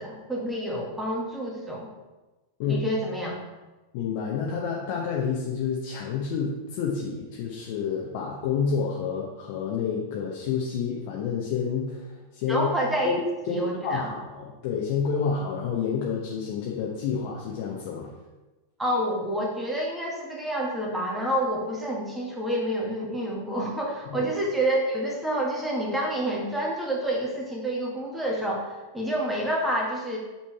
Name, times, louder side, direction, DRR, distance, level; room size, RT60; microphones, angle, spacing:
voice 1, 0.0-1.9 2.7-3.4 12.5-13.1 13.5-14.1 18.8-30.2, right 1 dB, 5° right, -2 dB, 1.7 m, -28 dB
voice 2, 3.9-12.7 13.0-13.2 13.5-18.1 24.1-24.3, left 6 dB, 50° left, -2 dB, 1.0 m, -29 dB
7.4 x 4.3 x 4.7 m, 1.1 s
figure-of-eight pair, 90°, 0 cm